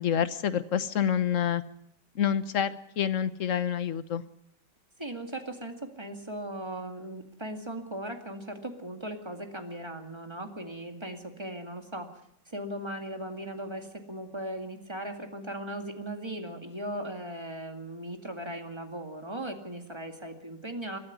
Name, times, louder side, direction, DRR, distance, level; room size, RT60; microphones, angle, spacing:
voice 1, 0.0-1.6 2.1-4.2, left 9 dB, 50° left, 13 dB, 1.2 m, -27 dB
voice 2, 5.0-12.1 12.5-21.0, right 1 dB, 15° right, 5 dB, 2.1 m, -38 dB
22.0 x 13.0 x 9.4 m, 0.75 s
omnidirectional pair, 1.9 m